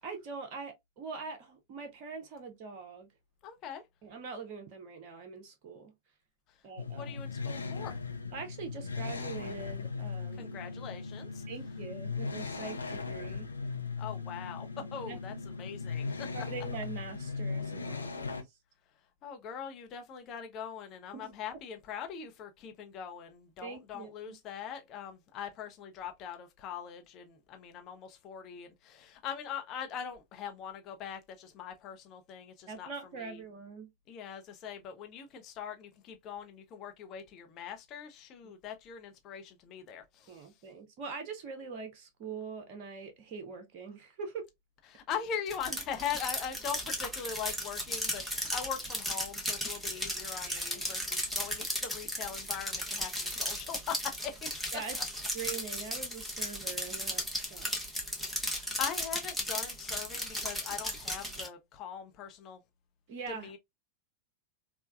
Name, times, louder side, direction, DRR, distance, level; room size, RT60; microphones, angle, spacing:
voice 1, 0.0-3.1 4.0-5.9 6.6-7.2 8.3-10.6 11.5-13.5 14.7-15.4 16.3-18.4 21.1-21.3 23.6-24.3 32.7-33.9 40.3-44.4 50.5-50.8 54.7-55.0 55.3-57.7 63.1-63.5, right 5 dB, 45° right, 0.6 m, -43 dB
voice 2, 3.4-3.8 6.9-7.9 10.4-11.4 14.0-16.5 19.2-33.4 34.1-40.5 44.9-54.7 58.4-62.6 63.3-63.6, left 8 dB, 35° left, 0.7 m, -41 dB
sound 1, 6.8-18.4, left 4 dB, 75° left, 0.4 m, -38 dB
sound 2, 45.5-61.5, equal, ahead, 0.9 m, -36 dB
3.2 x 2.1 x 2.3 m
figure-of-eight pair, 90°, 0 cm